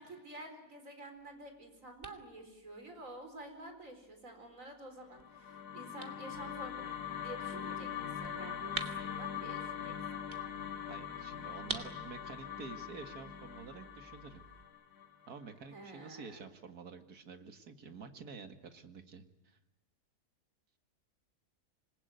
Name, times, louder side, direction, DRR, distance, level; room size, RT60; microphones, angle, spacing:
voice 1, 0.0-6.9 7.2-9.9 15.7-16.4, right 2 dB, 60° right, 6 dB, 4.7 m, -50 dB
sound 1, 1.2-14.6, right 3 dB, 35° right, 2.3 m, -50 dB
sound 2, 5.1-15.4, left 8 dB, 90° left, 1.9 m, -42 dB
voice 2, 10.8-14.4 15.3-19.6, right 5 dB, 80° right, 7 dB, 2.4 m, -49 dB
27.0 x 21.0 x 9.2 m, 0.93 s
omnidirectional pair, 1.6 m